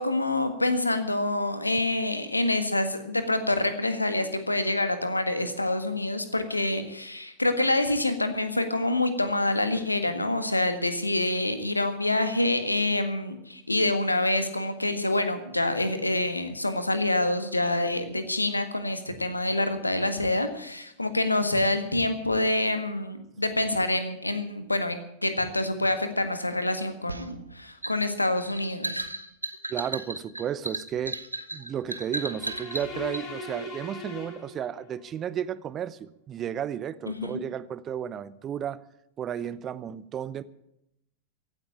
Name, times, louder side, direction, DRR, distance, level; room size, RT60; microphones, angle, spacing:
voice 1, 0.0-29.1 37.1-37.4, left 2 dB, 85° left, 1.6 m, -26 dB
sound 1, 27.1-33.2, right 2 dB, 85° right, 0.9 m, -35 dB
voice 2, 29.7-31.2 31.5-38.8 39.2-40.4, right 9 dB, 30° right, 0.7 m, -33 dB
Dissonance Example, 32.1-35.1, left 2 dB, 35° left, 4.3 m, -40 dB
16.0 x 8.9 x 8.8 m
figure-of-eight pair, 90°, 0 cm